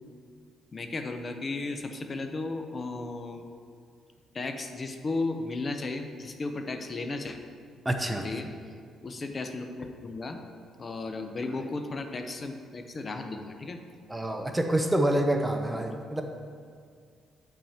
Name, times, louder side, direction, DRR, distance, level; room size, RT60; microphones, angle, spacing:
voice 1, 0.7-3.5 4.3-7.4 8.2-8.5 9.0-10.4 10.8-13.8 15.6-16.0, left 3 dB, 30° left, 6 dB, 0.6 m, -35 dB
voice 2, 7.9-8.3 14.1-16.2, right 1 dB, 10° right, 5 dB, 0.5 m, -27 dB
8.9 x 5.5 x 4.3 m, 2.2 s
cardioid pair, 110°, 0 cm